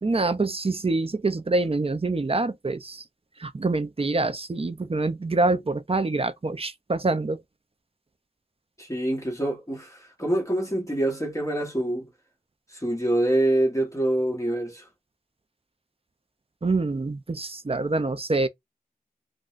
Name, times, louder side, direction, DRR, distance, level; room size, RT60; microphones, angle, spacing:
voice 1, 0.0-3.0 3.4-7.4 16.6-18.5, right 3 dB, 40° right, 0.4 m, -26 dB
voice 2, 8.8-12.1 12.7-14.9, right 1 dB, 20° left, 1.2 m, -25 dB
3.7 x 2.2 x 2.5 m
wide cardioid pair, 40°, 16 cm